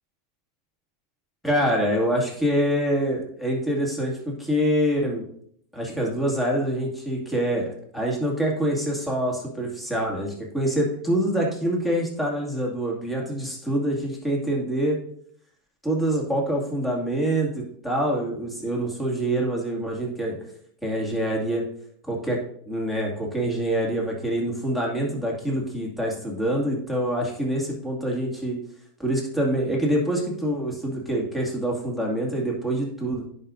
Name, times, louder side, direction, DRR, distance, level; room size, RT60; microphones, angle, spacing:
voice 1, 1.4-5.2 5.7-15.0 15.8-17.5 17.8-20.4 20.8-21.6 22.1-22.4 22.7-28.6 29.0-33.2, right 1 dB, 5° left, -3 dB, 2.4 m, -25 dB
11.0 x 5.2 x 2.7 m, 0.64 s
supercardioid pair, 125°, 0 cm